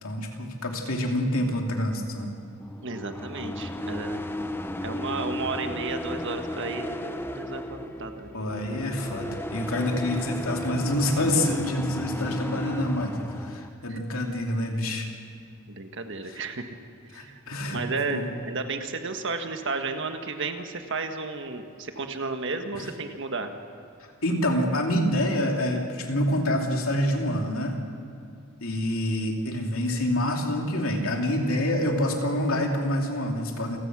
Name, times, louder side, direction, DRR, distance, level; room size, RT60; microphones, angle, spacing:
voice 1, 0.0-2.3 8.3-15.1 16.3-16.4 17.1-17.8 18.1-18.3 24.2-27.8 28.6-33.8, left 1 dB, 70° left, 1 dB, 2.8 m, -27 dB
sound 1, 2.6-13.7, left 1 dB, 10° left, 0.7 m, -34 dB
voice 2, 2.8-4.2 4.8-8.3 13.9-14.0 15.7-16.7 17.1-17.3 17.7-23.6, right 3 dB, 55° right, 6 dB, 1.5 m, -33 dB
28.5 x 16.0 x 6.2 m, 2.4 s
head